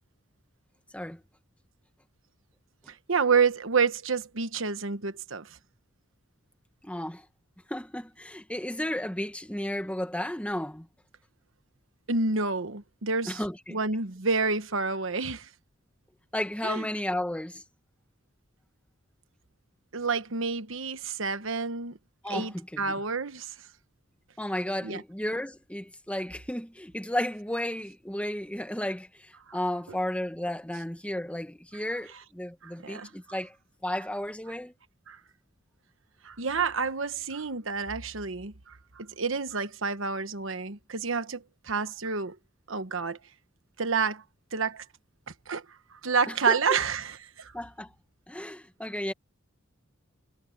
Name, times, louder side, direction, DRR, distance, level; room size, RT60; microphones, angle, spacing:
voice 1, 3.1-5.5 12.1-13.4 13.7-15.5 16.6-16.8 19.9-22.0 22.3-23.5 24.8-25.0 29.5-29.6 32.6-33.1 35.1-35.2 36.2-38.5 39.0-42.3 42.7-43.2 43.8-44.2 44.5-44.8 45.5-45.6 46.0-47.5, right 5 dB, 70° right, 1.2 m, -29 dB
voice 2, 6.8-7.2 7.7-10.9 13.3-13.8 16.3-17.6 22.2-23.0 24.4-29.1 29.5-33.5 33.8-34.7 46.3-46.8 47.5-47.9 48.3-49.1, left 1 dB, 5° left, 1.7 m, -33 dB
head